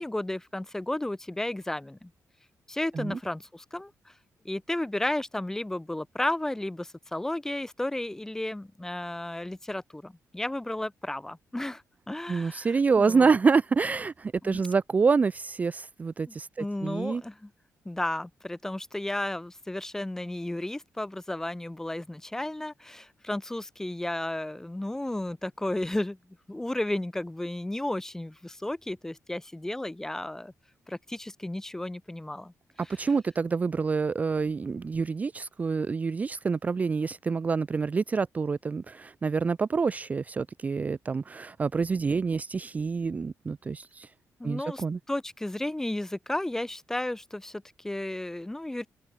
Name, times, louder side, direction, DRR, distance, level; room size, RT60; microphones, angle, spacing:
voice 1, 0.0-2.1 2.7-4.1 4.4-12.7 13.0-13.3 14.4-14.6 16.3-17.5 17.9-26.2 26.5-30.5 30.9-32.5 32.9-33.0 44.4-48.9, left 1 dB, 10° left, 0.7 m, -33 dB
voice 2, 12.3-17.2 32.9-44.1 44.4-45.0, right 5 dB, 25° right, 0.4 m, -27 dB
open air
wide cardioid pair, 145°, 6 cm